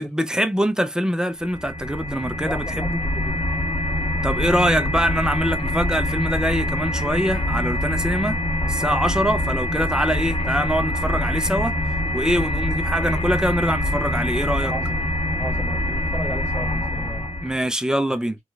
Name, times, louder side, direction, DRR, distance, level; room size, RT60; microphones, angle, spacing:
voice 1, 0.0-3.0 4.2-8.4 8.7-11.7 12.1-14.7 17.4-18.4, equal, 5° right, 0.4 m, -23 dB
sound 1, 1.4-17.6, left 1 dB, 45° left, 1.3 m, -24 dB
voice 2, 2.4-3.4 4.8-5.0 14.5-15.0 15.4-17.2 18.1-18.2, equal, 15° left, 1.2 m, -35 dB
3.0 x 2.3 x 3.2 m
wide cardioid pair, 105°, 13 cm